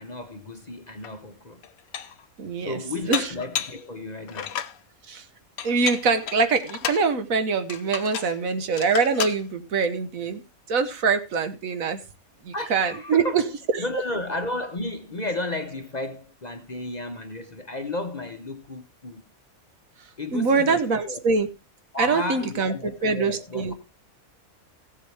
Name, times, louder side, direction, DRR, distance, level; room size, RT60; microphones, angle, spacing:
voice 1, 0.0-1.7 2.6-4.5 12.5-13.5 13.8-19.2 20.2-21.2 21.9-23.7, left 2 dB, 35° left, 0.8 m, -33 dB
Dishes pots and pans, 1.0-1.1 1.6-2.2 3.1-3.8 4.3-4.8 5.6-7.1 7.7-8.4 8.7-9.4, left 9 dB, 80° left, 1.2 m, -32 dB
voice 2, 2.4-2.8 3.1-3.3 5.1-5.2 5.6-10.4 10.7-12.0 12.4-13.4 20.3-21.5 22.0-23.7, right 4 dB, 70° right, 1.5 m, -24 dB
16.0 x 7.4 x 3.3 m
omnidirectional pair, 1.5 m